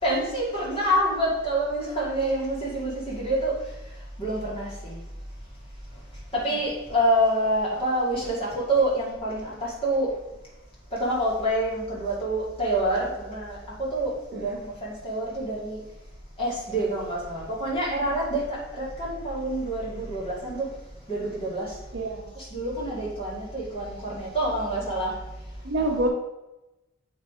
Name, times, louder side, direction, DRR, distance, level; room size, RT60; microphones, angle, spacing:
voice 1, 0.0-3.5 4.2-5.0 6.4-10.1 11.0-15.8 16.4-20.7 21.1-21.7 22.4-25.1, right 1 dB, 25° left, -6 dB, 2.3 m, -27 dB
voice 2, 21.9-22.4 25.6-26.1, right 1 dB, 55° right, 1 dB, 0.9 m, -27 dB
7.9 x 3.3 x 5.0 m, 0.99 s
head